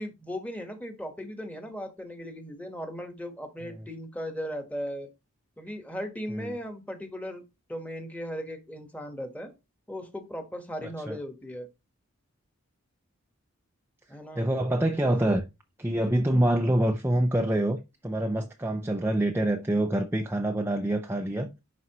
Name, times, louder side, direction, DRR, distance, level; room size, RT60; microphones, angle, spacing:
voice 1, 0.0-5.1 5.6-7.4 7.7-9.5 9.9-11.7 14.1-14.5, equal, 5° left, 1.2 m, -37 dB
voice 2, 14.4-15.4 15.8-21.5, right 1 dB, 10° right, 0.5 m, -26 dB
11.0 x 4.2 x 3.0 m
head